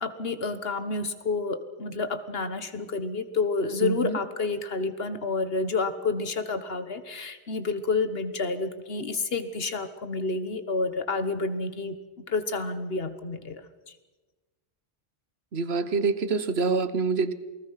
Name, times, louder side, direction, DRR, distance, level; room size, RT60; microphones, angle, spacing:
voice 1, 0.0-13.9, left 3 dB, 70° left, 11 dB, 1.6 m, -29 dB
voice 2, 3.8-4.2 15.5-17.3, right 4 dB, 85° right, 12 dB, 1.4 m, -26 dB
28.0 x 19.5 x 5.8 m, 1.3 s
omnidirectional pair, 1.0 m